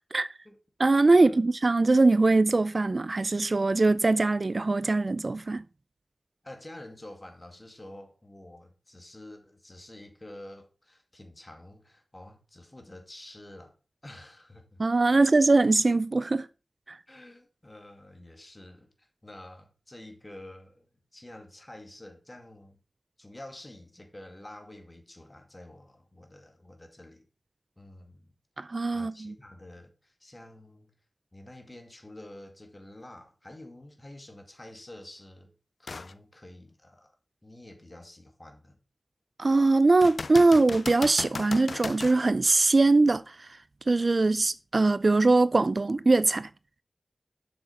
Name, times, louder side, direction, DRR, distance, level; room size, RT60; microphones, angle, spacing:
voice 1, 0.8-5.6 14.8-16.5 16.9-17.0 28.6-29.3 39.4-43.5 43.9-46.5, right 3 dB, 55° right, 0.4 m, -22 dB
voice 2, 6.4-13.8 14.0-14.8 15.1-15.4 17.1-22.8 23.2-27.3 27.8-28.3 28.9-30.9 31.3-35.5 35.8-37.2 37.4-38.8, left 1 dB, 30° left, 2.2 m, -48 dB
sound 1, 35.9-36.1 36.7-36.8 40.0-42.2 45.9-46.0, left 3 dB, 75° left, 0.3 m, -36 dB
7.6 x 6.6 x 5.3 m
wide cardioid pair, 80°, 0 cm